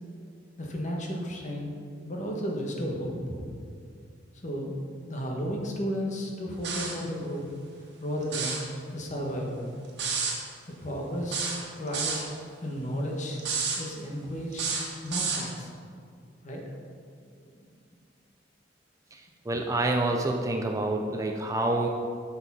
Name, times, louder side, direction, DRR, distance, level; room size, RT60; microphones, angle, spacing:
voice 1, 0.6-1.7 2.0-3.4 4.4-4.7 5.1-7.4 8.0-8.6 8.9-9.7 10.7-12.3 12.6-13.4 13.7-14.7 15.0-15.7 16.4-16.6 17.4-17.5, equal, 40° left, 0 dB, 1.3 m, -33 dB
sound 1, 6.6-7.0 8.2-8.6 10.0-10.4 11.3-12.2 13.4-13.8 14.5-15.5, right 5 dB, 60° right, 1.5 m, -30 dB
voice 2, 19.5-21.9, right 2 dB, 15° right, 2 dB, 0.5 m, -27 dB
7.0 x 6.5 x 5.6 m, 2.2 s
head